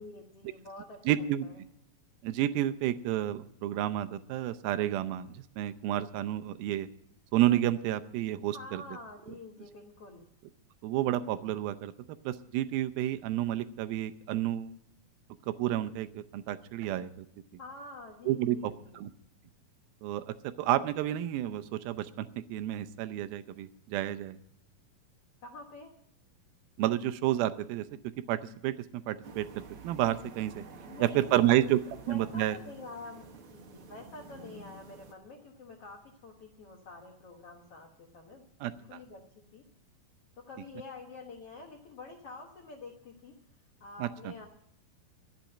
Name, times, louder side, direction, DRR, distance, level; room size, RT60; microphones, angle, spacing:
voice 1, 0.0-1.1 1.4-1.6 8.5-10.3 17.6-19.0 25.4-25.9 30.8-31.7 32.1-39.2 39.5-39.6 40.4-43.3 43.8-44.5, left 3 dB, 60° left, 2 dB, 1.7 m, -47 dB
voice 2, 1.1-1.5 2.2-6.9 7.3-8.8 10.8-11.9 12.2-14.7 15.5-17.3 18.3-19.1 20.0-20.2 20.6-24.4 26.8-27.9 28.3-30.6 31.0-31.8 32.1-32.6 38.6-39.0 44.0-44.3, right 13 dB, 85° right, 11 dB, 2.5 m, -30 dB
sound 1, 29.2-35.1, right 4 dB, 65° right, 1.3 m, -49 dB
12.0 x 8.3 x 9.9 m, 0.70 s
omnidirectional pair, 4.2 m